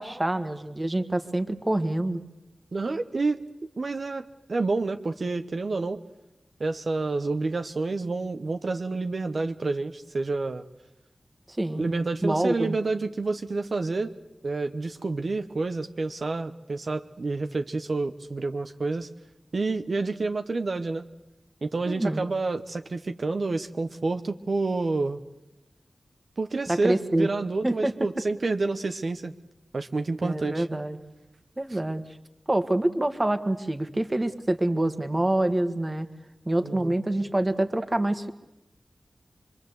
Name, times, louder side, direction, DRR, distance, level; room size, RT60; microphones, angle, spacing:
voice 1, 0.0-2.2 11.5-11.9 12.2-12.8 21.9-22.3 26.7-27.3 27.6-27.9 30.2-31.0 31.6-32.0 32.5-36.1 36.5-38.3, right 1 dB, 25° right, 9 dB, 1.7 m, -26 dB
voice 2, 2.7-3.4 3.8-6.0 6.6-10.6 11.8-14.1 14.4-19.1 19.5-21.1 21.6-25.2 26.4-29.3 29.7-30.7 31.7-31.8 36.6-36.9, right 3 dB, 60° right, 7 dB, 1.0 m, -29 dB
25.5 x 23.5 x 8.0 m, 0.96 s
wide cardioid pair, 80°, 0 cm